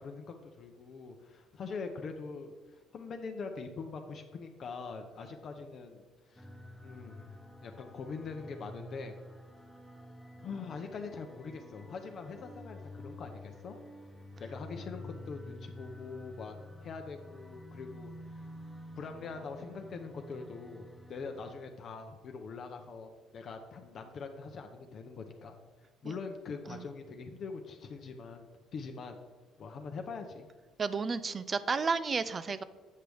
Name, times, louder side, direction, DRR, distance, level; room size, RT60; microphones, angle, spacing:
voice 1, 0.0-6.0 6.3-6.5 6.8-7.3 7.6-9.2 10.4-13.8 14.4-18.5 19.0-25.6 26.0-29.2 29.6-30.5, left 4 dB, 45° left, 5 dB, 0.7 m, -43 dB
sound 1, 6.4-21.6, left 1 dB, ahead, 0.7 m, -49 dB
voice 2, 30.8-32.6, right 4 dB, 30° right, 15 dB, 0.4 m, -32 dB
8.4 x 6.1 x 3.4 m, 1.4 s
cardioid pair, 120°, 0 cm